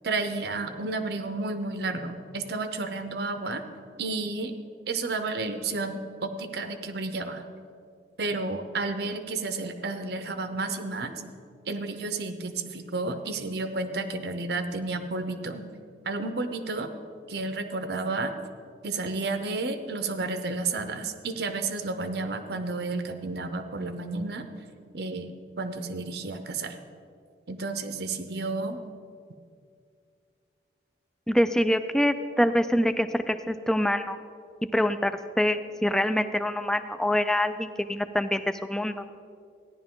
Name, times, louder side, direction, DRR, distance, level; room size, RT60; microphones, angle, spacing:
voice 1, 0.0-3.6 4.0-4.5 4.9-7.4 8.2-11.3 11.7-15.7 16.0-16.9 17.3-18.3 18.8-24.5 24.9-26.8 27.5-28.8, right 3 dB, 60° right, 8 dB, 0.7 m, -31 dB
voice 2, 31.3-34.2 34.7-39.1, left 1 dB, 5° left, 10 dB, 0.3 m, -25 dB
14.5 x 10.5 x 3.7 m, 2.3 s
head